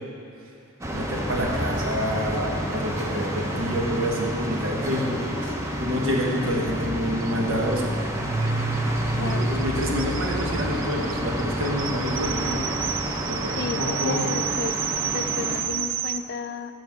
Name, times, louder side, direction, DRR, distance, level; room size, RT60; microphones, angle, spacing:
sound 1, 0.8-15.6, equal, 15° right, 0.6 m, -29 dB
voice 1, 0.9-8.0 9.2-12.7 13.2-14.3, equal, 80° right, -1 dB, 1.2 m, -28 dB
sound 2, 6.5-6.6 6.8-6.9 7.2-16.2, right 10 dB, 65° right, 0.4 m, -32 dB
voice 2, 9.2-9.5 13.5-14.8 15.1-16.7, left 5 dB, 50° left, 10 dB, 0.3 m, -33 dB
7.2 x 6.0 x 5.9 m, 2.5 s
head